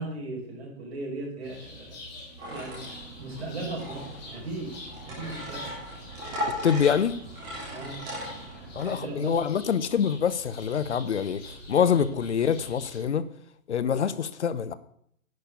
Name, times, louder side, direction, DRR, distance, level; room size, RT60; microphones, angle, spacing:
voice 1, 0.0-2.0 2.5-5.7 6.1-6.4 7.7-8.0 8.6-9.4 11.9-12.1, right 2 dB, 50° right, -2 dB, 5.7 m, -38 dB
sound 1, 1.4-13.0, left 1 dB, 30° left, 4.4 m, -46 dB
sound 2, 2.4-8.9, equal, 10° right, 3.0 m, -38 dB
voice 2, 6.6-7.2 8.7-11.4 11.7-13.3 13.7-14.7, left 7 dB, 55° left, 15 dB, 0.9 m, -25 dB
11.0 x 6.8 x 6.8 m, 0.66 s
hypercardioid pair, 175°, 41 cm